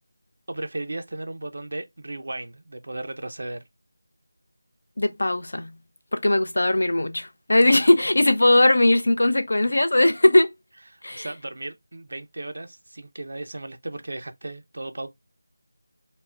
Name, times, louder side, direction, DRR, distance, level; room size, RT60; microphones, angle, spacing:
voice 1, 0.5-3.6 10.9-15.1, right 2 dB, 50° right, 0.3 m, -35 dB
voice 2, 5.0-5.7 6.1-10.5 11.0-11.3, left 1 dB, 65° left, 0.5 m, -19 dB
2.2 x 2.0 x 3.5 m
figure-of-eight pair, 180°, 0 cm